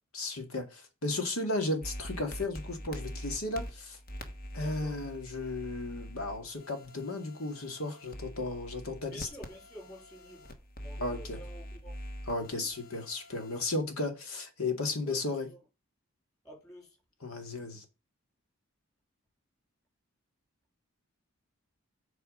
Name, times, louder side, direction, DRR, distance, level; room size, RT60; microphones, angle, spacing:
voice 1, 0.1-4.0 4.5-9.3 11.0-11.4 12.3-15.5 17.2-17.8, left 2 dB, 85° left, 2.2 m, -34 dB
sound 1, 1.8-13.8, equal, 45° left, 1.3 m, -44 dB
voice 2, 4.5-5.0 9.1-10.5 10.8-11.9 12.5-12.7 15.0-15.6 16.4-17.0, equal, 15° left, 4.9 m, -50 dB
8.2 x 4.8 x 5.4 m
head